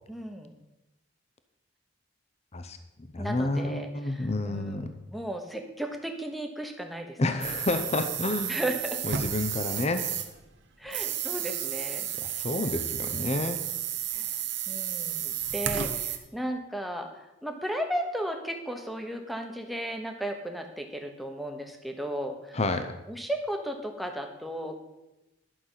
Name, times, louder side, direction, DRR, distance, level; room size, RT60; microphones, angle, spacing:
voice 1, 0.1-0.6 3.2-7.2 8.5-9.0 10.8-12.1 13.1-13.4 14.1-14.3 14.7-22.6 23.1-24.7, right 1 dB, ahead, 4 dB, 1.1 m, -35 dB
voice 2, 3.1-4.9 7.2-8.6 9.0-10.1 12.2-13.6 22.5-22.9, left 2 dB, 30° left, 8 dB, 0.6 m, -29 dB
sound 1, 7.4-10.4 10.8-16.2, right 10 dB, 55° right, 1.0 m, -32 dB
11.5 x 6.7 x 5.6 m, 0.98 s
head